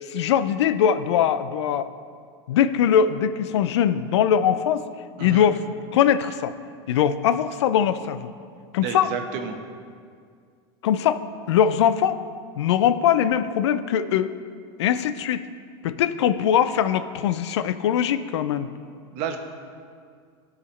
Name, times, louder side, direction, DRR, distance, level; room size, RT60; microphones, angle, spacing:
voice 1, 0.0-1.9 2.5-4.9 5.2-5.6 5.9-6.5 6.9-8.3 8.7-9.1 10.8-12.2 12.6-14.3 14.8-15.5 15.8-18.7, left 9 dB, 85° left, 13 dB, 0.4 m, -21 dB
voice 2, 8.8-9.6 19.1-19.4, right 7 dB, 60° right, 4 dB, 1.0 m, -30 dB
13.5 x 4.9 x 3.2 m, 2.2 s
supercardioid pair, 110°, 14 cm